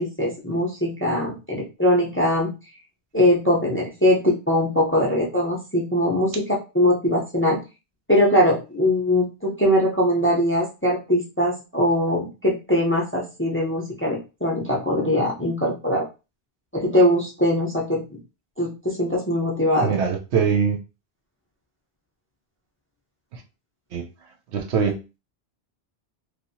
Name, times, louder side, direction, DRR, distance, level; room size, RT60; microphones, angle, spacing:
voice 1, 0.0-2.5 3.1-7.6 8.1-16.0 16.7-18.2 18.6-20.0, left 1 dB, 15° left, 0.6 m, -21 dB
voice 2, 19.8-20.8 23.3-23.4 23.9-24.1 24.5-25.0, right 6 dB, 80° right, 0.9 m, -22 dB
3.1 x 2.7 x 2.7 m
omnidirectional pair, 1.1 m